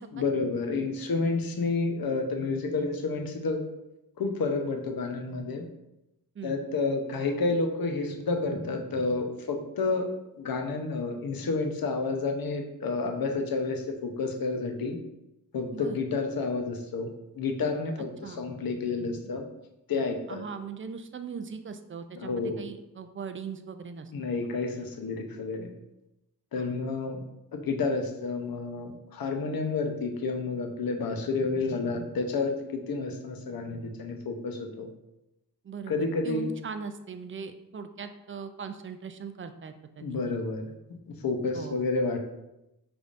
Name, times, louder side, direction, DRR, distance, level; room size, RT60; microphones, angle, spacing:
voice 1, 0.1-3.6 4.2-5.7 6.4-10.1 10.4-15.0 15.5-17.1 17.4-19.4 19.9-20.4 22.1-22.6 24.1-25.7 26.5-27.2 27.5-34.9 35.9-36.5 40.0-40.7 41.1-42.2, left 3 dB, 60° left, 4 dB, 0.7 m, -30 dB
voice 2, 20.3-24.1 26.6-26.7 35.6-40.4 41.5-41.9, right 5 dB, 35° right, 9 dB, 0.4 m, -40 dB
5.1 x 3.4 x 2.5 m, 0.89 s
cardioid pair, 70°, 40 cm